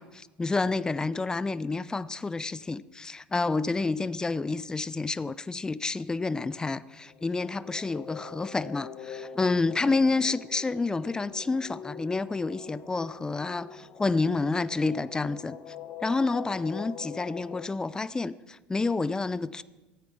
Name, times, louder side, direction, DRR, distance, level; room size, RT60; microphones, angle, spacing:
voice 1, 0.0-15.6 16.0-19.6, left 3 dB, 15° left, 0.4 m, -29 dB
sound 1, 7.0-17.7, left 7 dB, 55° left, 1.1 m, -44 dB
13.5 x 9.0 x 5.9 m
hypercardioid pair, 80°, 5 cm